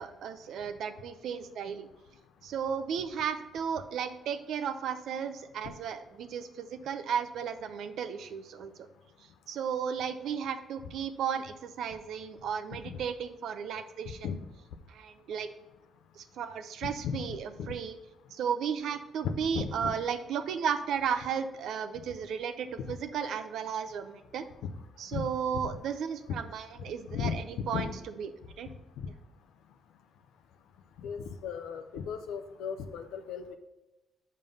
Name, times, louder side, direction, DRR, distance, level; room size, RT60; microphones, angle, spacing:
voice 1, 0.0-1.9 2.4-8.7 9.5-14.3 14.9-15.5 16.2-17.9 18.3-24.5 25.0-27.9 28.2-28.3 28.6-28.7, right 7 dB, 75° right, 10 dB, 0.6 m, -34 dB
voice 2, 14.1-14.4 17.0-17.2 17.6-17.7 19.2-20.0 22.8-22.9 25.1-25.3 25.6-25.7 27.1-27.4 27.7-27.9 29.0-29.1 31.0-33.5, left 7 dB, 90° left, 6 dB, 0.5 m, -36 dB
5.4 x 5.3 x 5.5 m, 1.0 s
cardioid pair, 90°, 0 cm